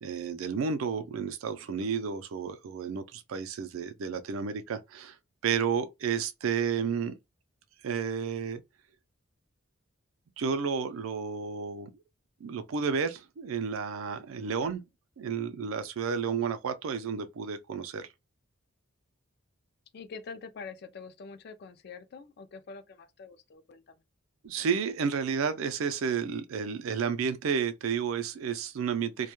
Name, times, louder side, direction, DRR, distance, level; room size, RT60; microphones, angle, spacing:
voice 1, 0.0-5.2 5.4-7.2 7.8-8.6 10.4-11.9 12.4-14.8 15.2-18.1 24.4-29.3, right 6 dB, 70° right, 0.4 m, -31 dB
voice 2, 19.9-24.0, left 5 dB, 50° left, 0.3 m, -45 dB
2.2 x 2.1 x 2.9 m
head